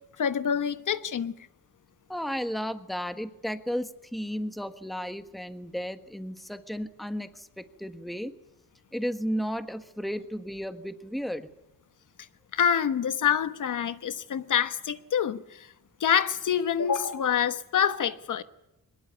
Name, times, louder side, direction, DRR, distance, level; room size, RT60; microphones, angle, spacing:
voice 1, 0.2-1.3 12.5-15.7 16.0-18.4, left 8 dB, 60° left, 1.2 m, -26 dB
voice 2, 2.1-8.3 8.9-11.5, equal, ahead, 1.4 m, -34 dB
23.0 x 20.5 x 9.5 m
cardioid pair, 125°, 35 cm